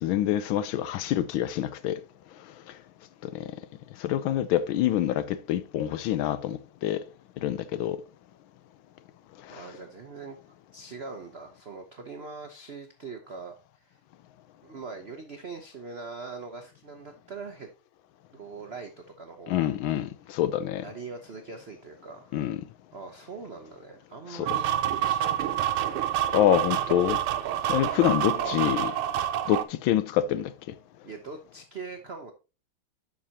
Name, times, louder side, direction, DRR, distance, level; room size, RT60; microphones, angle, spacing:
voice 1, 0.0-2.0 3.2-3.5 4.0-7.1 7.4-8.0 9.5-9.7 19.5-20.8 22.3-22.6 24.3-24.5 26.3-27.2 27.7-28.9 29.5-30.5, left 11 dB, 75° left, 1.3 m, -26 dB
voice 2, 9.5-10.4 10.7-14.0 14.6-17.7 18.3-18.9 19.2-19.7 20.8-22.3 22.9-26.1 28.0-28.6 31.0-32.3, right 4 dB, 65° right, 0.6 m, -42 dB
sound 1, 24.5-29.6, right 11 dB, 80° right, 1.6 m, -27 dB
11.5 x 5.5 x 2.8 m
omnidirectional pair, 2.4 m